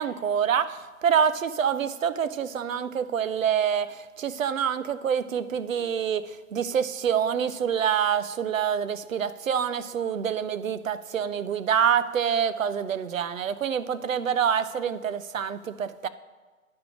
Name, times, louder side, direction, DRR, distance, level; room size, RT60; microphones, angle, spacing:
voice 1, 0.0-16.1, right 8 dB, 65° right, 14 dB, 0.6 m, -26 dB
9.5 x 5.3 x 6.0 m, 1.3 s
figure-of-eight pair, 145°, 43 cm